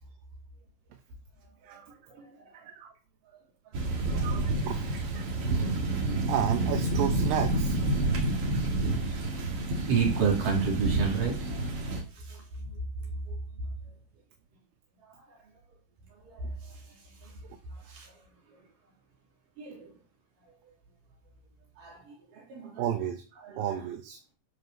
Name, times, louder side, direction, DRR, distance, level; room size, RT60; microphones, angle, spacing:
voice 1, 2.1-2.7 4.1-4.2 5.6-5.7 8.8-9.0 9.9-11.6 12.1-13.7 15.1-15.2 16.1-17.4 17.7-18.2 19.6-19.9 21.8-22.9 23.4-23.8, right 5 dB, 60° right, -1 dB, 4.7 m, -33 dB
sound 1, 3.7-12.0, right 2 dB, 45° right, 2.4 m, -29 dB
voice 2, 4.1-5.7 6.3-7.8 22.8-23.2 23.6-24.2, right 9 dB, 80° right, 4 dB, 2.8 m, -32 dB
12.5 x 5.2 x 5.4 m, 0.34 s
omnidirectional pair, 4.2 m